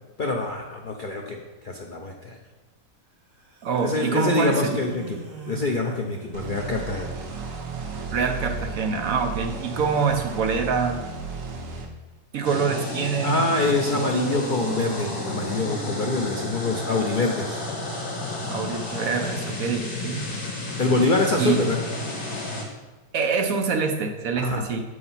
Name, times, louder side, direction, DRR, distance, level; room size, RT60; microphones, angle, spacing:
voice 1, 0.2-2.4 3.8-5.2 5.5-7.1 13.2-17.6 20.8-21.8 24.4-24.7, left 3 dB, 75° left, 1 dB, 0.4 m, -25 dB
sound 1, 3.4-6.7 13.8-16.8, right 3 dB, 40° right, 1.3 m, -37 dB
voice 2, 3.6-4.7 8.1-11.0 12.3-13.5 18.4-20.3 21.4-21.6 23.1-24.8, right 5 dB, 60° right, 4 dB, 1.0 m, -25 dB
sound 2, 6.3-11.9, right 4 dB, 80° right, 1.7 m, -34 dB
sound 3, 12.4-22.6, left 2 dB, 60° left, 2.2 m, -32 dB
7.8 x 4.9 x 5.6 m, 1.2 s
omnidirectional pair, 1.9 m